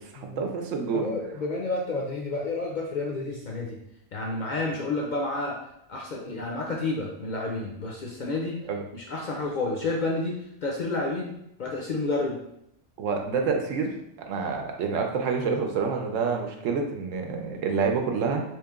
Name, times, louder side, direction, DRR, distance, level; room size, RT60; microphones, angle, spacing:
voice 1, 0.0-1.1 8.7-8.8 13.0-18.4, right 5 dB, 85° right, 3 dB, 1.0 m, -28 dB
voice 2, 0.9-3.8 4.1-5.6 5.9-8.6 8.9-12.4, left 2 dB, 60° left, -1 dB, 0.5 m, -30 dB
3.1 x 2.8 x 3.5 m, 0.78 s
omnidirectional pair, 1.3 m